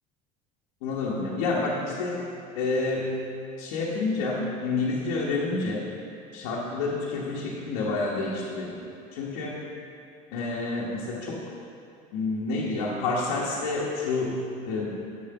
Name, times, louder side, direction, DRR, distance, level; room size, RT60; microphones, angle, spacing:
voice 1, 0.8-2.2 2.5-3.1 3.6-5.8 6.3-8.8 9.1-9.5 10.3-11.4 12.1-14.4 14.7-14.9, left 3 dB, 90° left, -6 dB, 1.2 m, -28 dB
7.3 x 5.3 x 5.7 m, 2.5 s
supercardioid pair, 110°, 18 cm